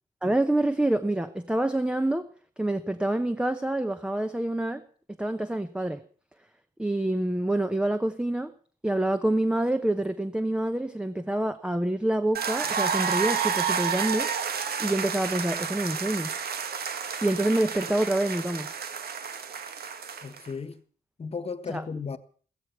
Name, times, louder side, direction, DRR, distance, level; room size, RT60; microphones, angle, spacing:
voice 1, 0.2-2.3 2.6-4.8 5.2-6.0 6.8-8.5 8.8-14.3 14.8-16.3 17.2-18.7 21.7-21.8, right 1 dB, 5° right, 1.0 m, -27 dB
sound 1, 12.3-20.5, right 6 dB, 85° right, 2.1 m, -30 dB
voice 2, 20.2-20.8 21.2-22.2, left 5 dB, 40° left, 1.5 m, -35 dB
16.0 x 15.0 x 6.0 m
wide cardioid pair, 140°, 16 cm